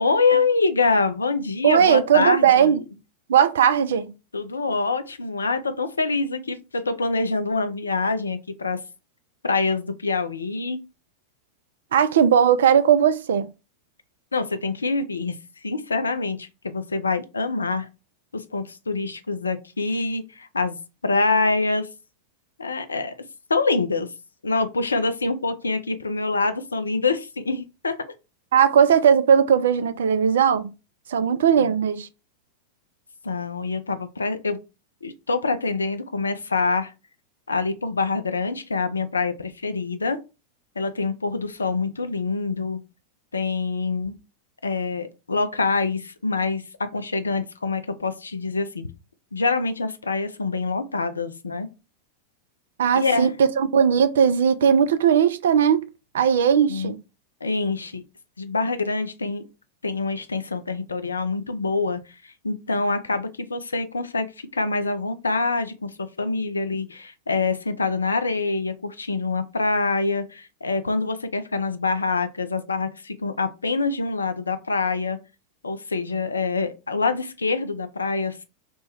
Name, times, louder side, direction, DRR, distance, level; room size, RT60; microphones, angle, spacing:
voice 1, 0.0-2.8 4.3-8.8 9.4-10.8 14.3-15.4 15.6-17.9 18.3-20.8 21.0-21.9 22.6-23.1 23.5-24.1 24.4-28.0 31.6-31.7 33.2-34.6 35.0-36.9 37.5-40.2 40.8-42.8 43.3-44.2 44.6-48.9 49.3-51.7 53.0-53.3 56.7-56.9 57.4-58.0 58.4-59.4 59.8-75.2 75.6-78.4, left 3 dB, 75° left, 0.4 m, -25 dB
voice 2, 1.6-2.8 3.3-4.1 11.9-13.5 28.5-30.7 31.1-32.1 52.8-55.9 56.1-57.0, right 8 dB, 60° right, 0.3 m, -18 dB
2.9 x 2.1 x 3.3 m
figure-of-eight pair, 90°, 0 cm